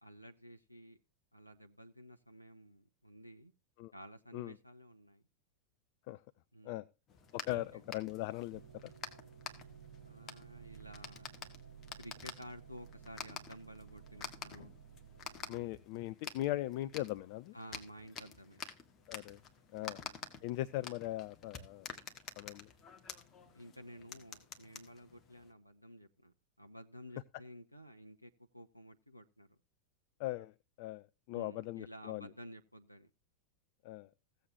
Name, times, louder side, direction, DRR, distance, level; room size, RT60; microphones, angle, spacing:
voice 1, 0.0-1.0 1.3-3.5 3.9-5.2 6.5-6.8 7.5-7.8 10.0-11.3 12.0-14.7 17.5-18.6 19.8-20.1 23.5-29.5 31.3-33.1, equal, 90° left, 7 dB, 0.6 m, -53 dB
sound 1, 7.1-25.5, left 6 dB, 25° left, 1.7 m, -50 dB
voice 2, 7.3-8.9 15.5-17.5 19.1-19.4 19.7-20.0 20.4-21.9 22.4-22.7 30.2-32.3 33.8-34.1, left 16 dB, 45° left, 15 dB, 0.4 m, -40 dB
sound 2, 8.5-15.7, right 8 dB, 70° right, 1.7 m, -55 dB
16.5 x 7.7 x 2.9 m, 0.30 s
figure-of-eight pair, 90°, 0 cm